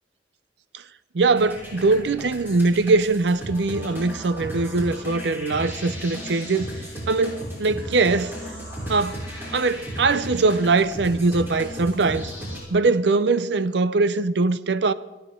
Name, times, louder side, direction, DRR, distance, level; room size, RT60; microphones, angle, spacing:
voice 1, 1.1-6.7 7.1-8.4 8.9-9.2 9.5-12.3 12.7-14.9, right 3 dB, 75° right, 0.6 m, -21 dB
sound 1, 1.3-12.6, equal, 15° right, 5.6 m, -35 dB
28.0 x 9.7 x 3.7 m
head